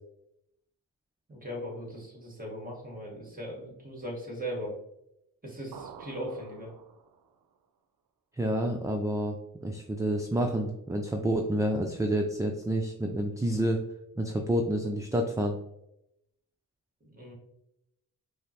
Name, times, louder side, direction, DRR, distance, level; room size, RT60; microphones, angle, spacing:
voice 1, 1.3-4.8 5.4-6.7 17.0-17.3, equal, 25° right, -2 dB, 1.4 m, -39 dB
sound 1, 5.7-7.4, right 7 dB, 80° right, 0.5 m, -48 dB
voice 2, 8.3-9.4 9.6-13.8 14.2-15.6, right 1 dB, 10° right, 2 dB, 0.4 m, -28 dB
5.3 x 2.0 x 2.8 m, 0.82 s
cardioid pair, 50°, 34 cm